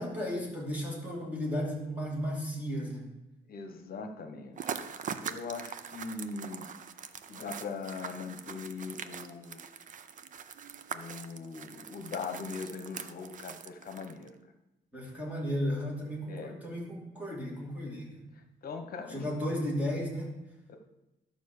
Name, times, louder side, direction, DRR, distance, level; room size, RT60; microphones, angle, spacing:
voice 1, 0.0-3.1 14.9-18.1 19.1-20.3, equal, 10° right, -4 dB, 2.6 m, -34 dB
voice 2, 3.5-6.7 7.3-9.6 10.9-14.3 16.3-16.5 18.6-19.3 20.7-20.8, left 4 dB, 50° left, 6 dB, 1.1 m, -41 dB
sound 1, 4.5-14.3, right 7 dB, 45° right, 0.5 m, -42 dB
12.0 x 5.2 x 6.7 m, 0.97 s
cardioid pair, 170°, 19 cm